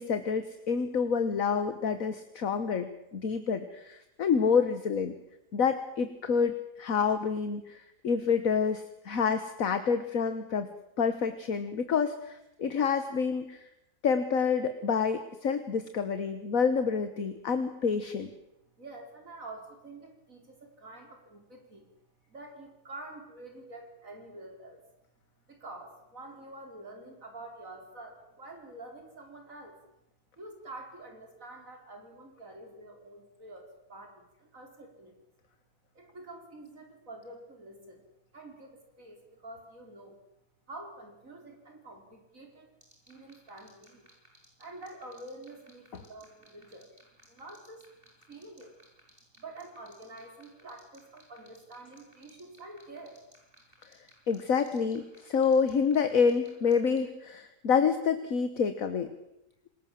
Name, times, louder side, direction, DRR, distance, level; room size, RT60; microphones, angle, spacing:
voice 1, 0.0-5.1 5.5-10.7 11.0-13.7 14.0-18.3 54.3-59.1, left 6 dB, 60° left, 9 dB, 1.7 m, -28 dB
voice 2, 18.8-21.9 22.3-24.8 25.5-29.8 30.4-35.2 35.9-38.1 38.3-40.2 40.7-42.7 43.1-44.1 44.6-46.9 47.2-47.8 48.3-48.7 49.4-53.2, right 2 dB, 55° right, 3 dB, 5.1 m, -47 dB
sound 1, 42.8-57.0, right 1 dB, 35° right, 7.8 m, -58 dB
28.0 x 20.0 x 7.6 m, 0.85 s
omnidirectional pair, 1.7 m